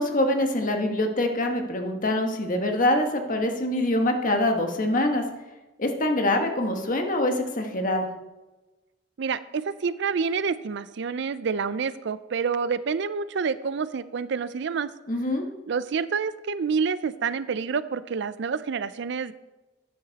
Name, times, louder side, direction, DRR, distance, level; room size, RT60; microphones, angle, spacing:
voice 1, 0.0-5.2 5.8-8.1 15.1-15.4, left 1 dB, 45° left, 4 dB, 1.4 m, -24 dB
voice 2, 9.2-14.9 15.7-19.3, right 5 dB, 65° right, 15 dB, 0.5 m, -28 dB
11.0 x 9.4 x 4.1 m, 1.1 s
head